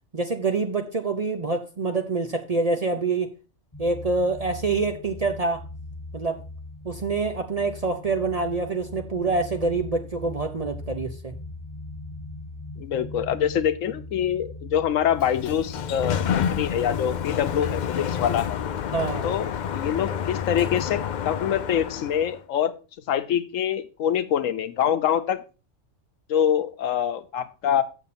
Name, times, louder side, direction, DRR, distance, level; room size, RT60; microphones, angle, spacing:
voice 1, 0.1-3.3 3.8-5.6 6.1-6.4 6.8-11.3 18.9-19.3, right 3 dB, 40° right, 6 dB, 0.6 m, -26 dB
sound 1, 3.7-19.5, left 2 dB, 20° left, 1.4 m, -40 dB
voice 2, 12.8-18.6 19.2-22.7 23.1-25.4 26.3-27.8, left 9 dB, 80° left, 11 dB, 1.1 m, -25 dB
Sliding door, 15.0-22.4, left 8 dB, 65° left, 0.4 m, -29 dB
7.2 x 7.0 x 4.1 m, 0.32 s
omnidirectional pair, 1.3 m